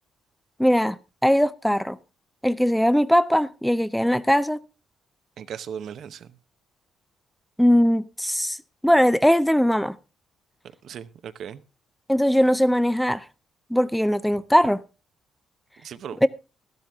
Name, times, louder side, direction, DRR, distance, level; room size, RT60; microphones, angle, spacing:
voice 1, 0.6-1.0 1.2-2.0 2.4-4.6 7.6-8.6 8.8-9.9 12.1-13.2 13.7-14.8 16.2-16.3, equal, ahead, 0.5 m, -20 dB
voice 2, 5.4-6.3 10.8-11.6 15.8-16.2, right 8 dB, 65° right, 0.8 m, -37 dB
13.0 x 12.0 x 3.5 m
cardioid pair, 100°, 0 cm